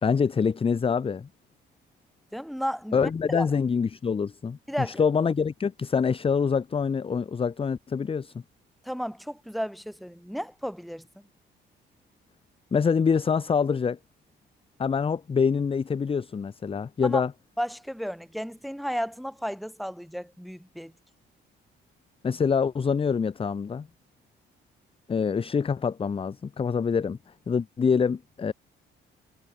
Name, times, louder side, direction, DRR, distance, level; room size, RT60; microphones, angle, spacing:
voice 1, 0.0-1.3 2.9-8.3 12.7-14.0 14.8-17.3 22.2-23.9 25.1-27.2 27.5-28.5, left 6 dB, 30° left, 0.6 m, -25 dB
voice 2, 2.3-3.5 4.7-5.0 8.8-11.3 17.0-17.2 17.6-20.9, equal, ahead, 7.5 m, -33 dB
cardioid pair, 90°, 20 cm